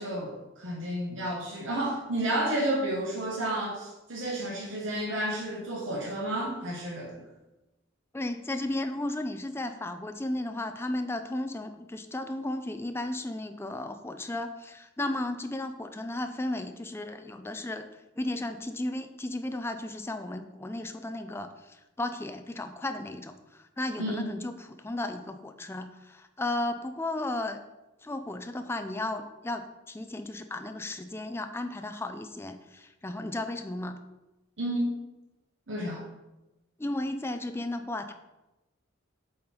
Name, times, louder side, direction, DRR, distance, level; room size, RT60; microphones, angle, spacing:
voice 1, 0.0-7.1 24.0-24.3 34.6-35.0 35.7-36.0, right 1 dB, 75° right, -2 dB, 1.1 m, -31 dB
voice 2, 8.1-17.9 18.2-27.6 28.0-34.0 36.8-38.1, left 1 dB, 10° left, 7 dB, 0.4 m, -34 dB
7.6 x 3.9 x 4.4 m, 1.0 s
head